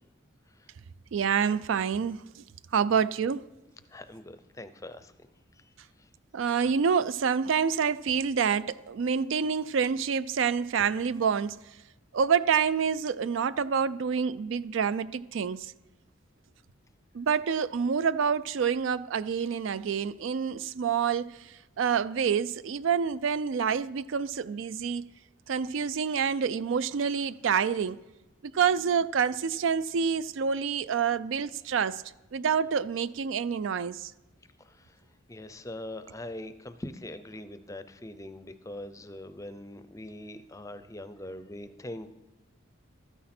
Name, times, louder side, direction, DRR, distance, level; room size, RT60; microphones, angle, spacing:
voice 1, 1.1-2.2 2.7-3.4 6.3-11.6 12.1-15.7 17.1-21.3 21.8-25.0 25.5-28.0 28.4-32.0 32.3-34.1, right 6 dB, 70° right, 0.4 m, -27 dB
voice 2, 3.9-5.1 5.5-5.7 6.0-6.1 34.6-35.0 35.3-42.1, left 1 dB, 15° left, 0.5 m, -42 dB
13.0 x 9.8 x 4.3 m
head